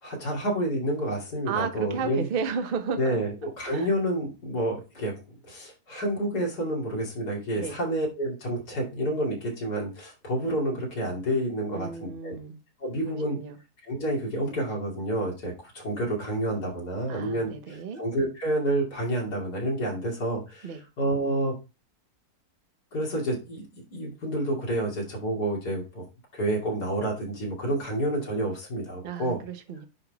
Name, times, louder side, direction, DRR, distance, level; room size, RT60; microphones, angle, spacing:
voice 1, 0.0-2.3 3.0-12.4 12.8-13.4 13.9-20.7 21.0-21.5 22.9-23.6 23.9-26.0 26.3-29.4, right 1 dB, 75° left, -2 dB, 3.2 m, -29 dB
voice 2, 1.5-3.2 3.6-3.9 7.6-7.8 11.7-12.6 13.0-13.6 17.1-18.0 20.6-20.8 29.0-29.9, right 6 dB, 45° right, 7 dB, 0.8 m, -33 dB
9.7 x 3.8 x 3.4 m, 0.28 s
omnidirectional pair, 1.7 m